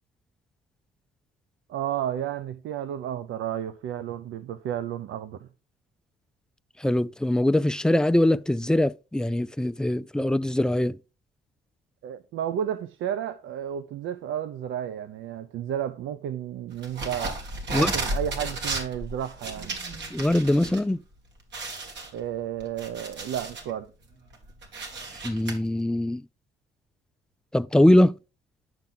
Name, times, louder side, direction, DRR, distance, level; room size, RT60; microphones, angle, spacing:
voice 1, 1.7-5.5 12.0-17.4 17.7-19.7 22.1-23.9, right 10 dB, 80° right, 0.7 m, -32 dB
voice 2, 6.8-11.0 17.7-17.9 20.1-21.0 25.2-26.2 27.5-28.1, left 1 dB, 5° left, 0.4 m, -22 dB
sound 1, 16.8-20.8 21.1-21.2 21.5-23.7 24.2-25.5, right 2 dB, 65° right, 2.7 m, -33 dB
10.5 x 5.9 x 3.8 m
cardioid pair, 90°, 20 cm